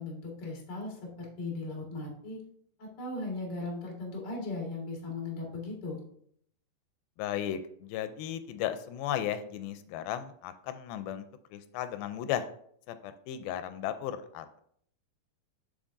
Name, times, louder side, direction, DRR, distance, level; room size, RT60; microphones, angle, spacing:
voice 1, 0.0-2.4 2.8-6.0, left 2 dB, 35° left, -2 dB, 1.9 m, -38 dB
voice 2, 7.2-11.3 11.5-12.5 12.9-14.6, left 10 dB, 90° left, 10 dB, 2.4 m, -35 dB
7.1 x 6.9 x 2.6 m, 0.65 s
omnidirectional pair, 4.2 m